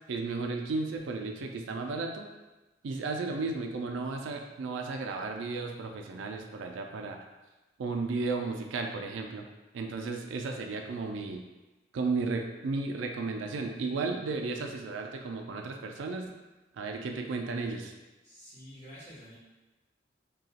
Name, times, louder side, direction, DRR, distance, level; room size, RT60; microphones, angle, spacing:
voice 1, 0.1-2.3 2.8-7.2 7.8-9.5 9.7-11.4 11.9-16.3 16.8-17.9, right 3 dB, 85° right, 3 dB, 0.4 m, -34 dB
voice 2, 3.0-3.5 14.4-14.8 18.2-19.3, equal, 15° left, -11 dB, 1.4 m, -50 dB
2.8 x 2.3 x 4.0 m, 1.1 s
head